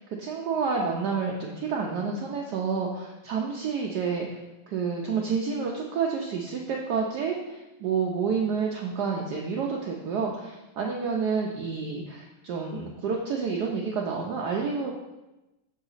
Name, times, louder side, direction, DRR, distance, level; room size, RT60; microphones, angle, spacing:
voice 1, 0.1-14.9, right 5 dB, 80° right, -1 dB, 0.9 m, -29 dB
6.4 x 3.9 x 4.0 m, 1.0 s
omnidirectional pair, 2.4 m